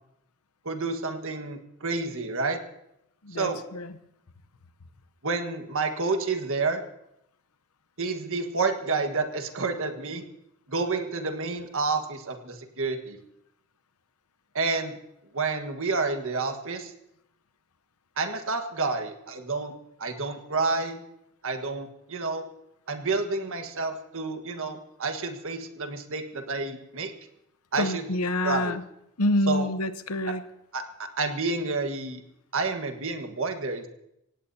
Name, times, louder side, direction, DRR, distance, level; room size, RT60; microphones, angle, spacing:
voice 1, 0.6-2.6 3.3-3.6 5.2-6.8 8.0-10.2 10.7-13.2 14.5-14.9 15.3-16.9 18.2-19.7 20.0-21.0 21.4-22.4 22.9-27.1 27.7-28.0 28.4-28.8 29.5-29.7 30.7-32.2 32.5-33.9, right 3 dB, 60° right, 5 dB, 1.6 m, -29 dB
voice 2, 3.2-3.9 27.8-28.8 29.2-30.4, left 1 dB, 75° left, 12 dB, 0.9 m, -27 dB
25.5 x 17.5 x 2.8 m, 0.80 s
head